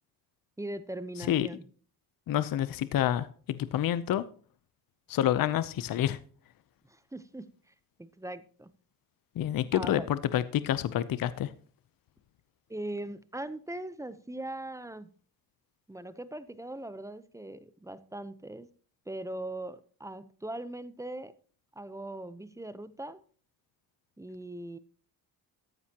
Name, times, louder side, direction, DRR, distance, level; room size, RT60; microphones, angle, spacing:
voice 1, 0.6-1.7 6.9-7.7 8.0-8.7 9.7-10.1 12.7-15.1 15.9-18.7 19.1-21.3 21.7-23.2 24.2-24.8, right 1 dB, 10° right, 14 dB, 0.7 m, -40 dB
voice 2, 2.3-4.2 5.1-6.2 9.4-11.5, left 11 dB, 60° left, 15 dB, 0.7 m, -28 dB
14.5 x 9.7 x 2.9 m, 0.44 s
cardioid pair, 120°, 38 cm